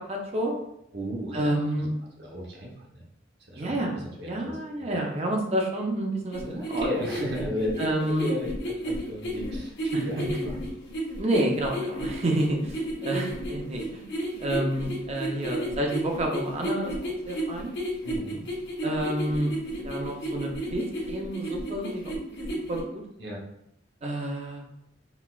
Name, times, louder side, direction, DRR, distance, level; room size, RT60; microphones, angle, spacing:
voice 1, 0.1-0.6 1.3-1.9 3.6-6.4 6.7-6.9 7.8-8.3 11.2-14.0 14.4-17.7 18.8-19.5 19.8-22.1 22.7-23.0 24.0-24.6, right 1 dB, 35° right, 1 dB, 0.5 m, -29 dB
voice 2, 0.9-1.5 2.2-3.0 3.5-3.7 4.2-4.6 4.9-5.0 6.4-10.5 18.0-18.4 23.2-23.4, equal, 65° right, -1 dB, 0.8 m, -34 dB
sound 1, 6.3-22.8, right 1 dB, 65° left, 0.7 m, -32 dB
4.0 x 2.3 x 2.3 m, 0.79 s
head